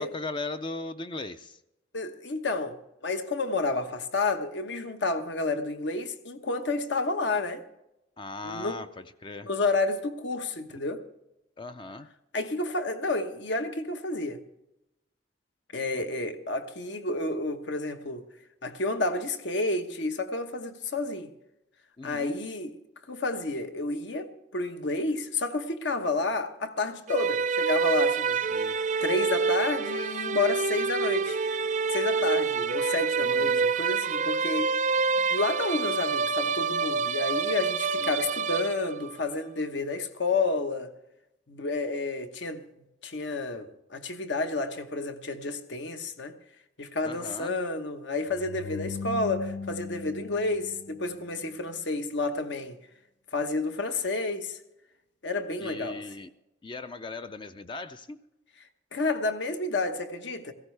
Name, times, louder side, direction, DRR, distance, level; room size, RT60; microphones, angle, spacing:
voice 1, 0.0-1.6 8.2-9.5 11.6-12.1 22.0-22.4 28.5-28.8 33.2-33.6 38.0-38.3 47.0-47.5 55.6-56.3 56.6-58.2, left 3 dB, 25° left, 0.4 m, -38 dB
voice 2, 1.9-2.8 3.0-7.6 8.4-8.8 9.4-11.0 12.3-14.4 15.7-18.2 18.6-21.3 22.0-22.7 23.1-28.6 29.0-31.4 31.9-34.7 35.3-40.9 41.5-42.6 43.0-46.3 46.8-52.8 53.3-54.6 55.2-56.0 58.9-60.5, left 3 dB, 70° left, 1.1 m, -30 dB
sound 1, 27.1-39.2, right 5 dB, 40° right, 0.5 m, -27 dB
sound 2, 48.3-51.5, left 4 dB, 90° left, 0.5 m, -38 dB
17.5 x 15.5 x 3.3 m
head